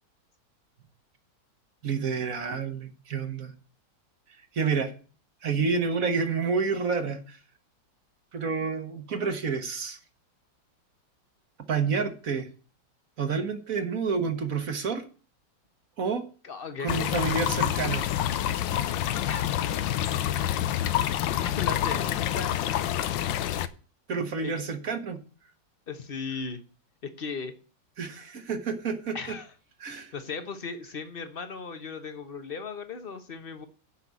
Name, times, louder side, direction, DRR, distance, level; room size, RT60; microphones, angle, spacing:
voice 1, 1.8-3.5 4.5-4.9 5.4-7.4 8.3-10.0 11.7-12.5 13.2-15.0 16.0-16.2 16.8-18.1 24.1-25.2 28.0-29.4 29.8-30.1, right 5 dB, 50° right, 7 dB, 1.6 m, -29 dB
voice 2, 16.4-17.1 19.3-19.4 20.3-20.5 21.4-22.6 24.4-24.6 25.9-26.6 27.0-27.5 29.1-29.5 29.9-33.7, left 5 dB, 35° left, 9 dB, 1.0 m, -37 dB
sound 1, 16.9-23.7, left 11 dB, 80° left, 1.4 m, -27 dB
8.5 x 5.9 x 8.1 m, 0.38 s
omnidirectional pair, 2.0 m